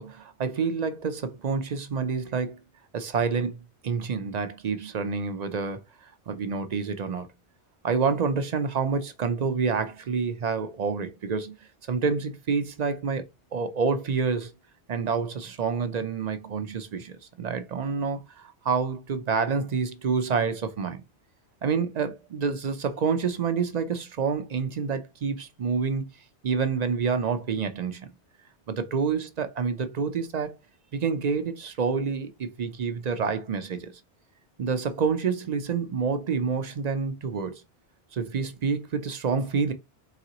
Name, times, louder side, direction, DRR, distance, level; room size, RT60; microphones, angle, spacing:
voice 1, 0.0-2.6 2.9-3.6 3.8-7.3 7.8-11.5 11.9-13.3 13.5-14.5 14.9-21.0 21.6-26.1 26.4-28.1 28.7-30.6 30.9-34.0 34.6-37.6 38.1-39.7, right 5 dB, 50° right, 0.5 m, -28 dB
4.0 x 3.7 x 2.8 m
omnidirectional pair, 1.2 m